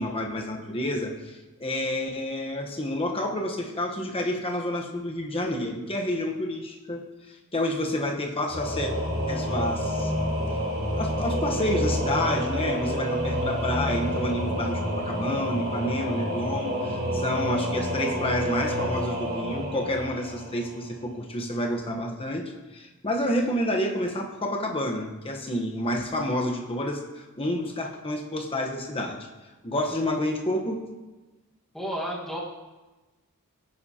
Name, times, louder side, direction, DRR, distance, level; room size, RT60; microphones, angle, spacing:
voice 1, 0.0-8.9 9.3-10.1 10.9-29.3 29.6-30.8, left 1 dB, 25° left, 2 dB, 1.1 m, -29 dB
Singing / Musical instrument, 8.5-21.0, equal, 65° right, 3.3 m, -29 dB
voice 2, 31.7-32.4, equal, ahead, -3 dB, 1.6 m, -31 dB
17.0 x 9.5 x 2.9 m, 1.2 s
head